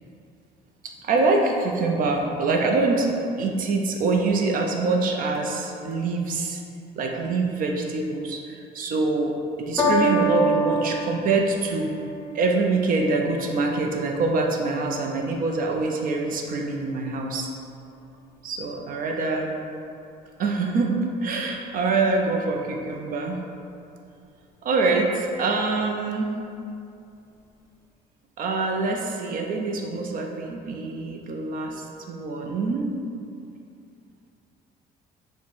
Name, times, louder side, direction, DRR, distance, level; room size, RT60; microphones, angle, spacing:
voice 1, 0.8-3.1 3.4-6.6 7.0-11.9 12.3-17.5 18.4-19.5 20.4-23.4 24.6-26.3 28.4-32.9, right 3 dB, 55° right, 1 dB, 0.5 m, -25 dB
Piano, 9.8-16.4 17.2-17.3, right 2 dB, 15° left, 0.7 m, -28 dB
4.0 x 2.1 x 4.5 m, 2.5 s
cardioid pair, 110°, 17 cm